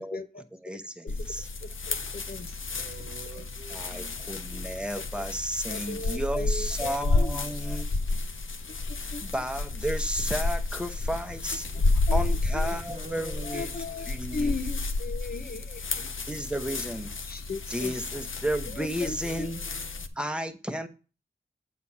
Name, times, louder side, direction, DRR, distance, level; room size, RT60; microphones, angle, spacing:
voice 1, 0.0-0.4 1.0-1.1 1.6-2.6 3.4-3.5 5.7-7.4 9.1-9.2 12.1-12.8 13.4-16.1 17.2-17.9 18.8-19.5, left 3 dB, 50° left, 0.7 m, -37 dB
voice 2, 0.6-1.5 3.7-7.9 9.0-11.7 11.9-14.5 16.3-17.1 17.7-19.6 20.2-20.9, equal, 5° right, 0.9 m, -33 dB
sound 1, 1.1-20.1, left 3 dB, 80° left, 0.7 m, -31 dB
voice 3, 2.7-4.7 11.0-11.1 11.6-11.9 12.7-14.2 14.6-14.7 19.2-20.0, right 3 dB, 35° right, 1.2 m, -47 dB
8.3 x 4.2 x 6.0 m
wide cardioid pair, 60°, 20 cm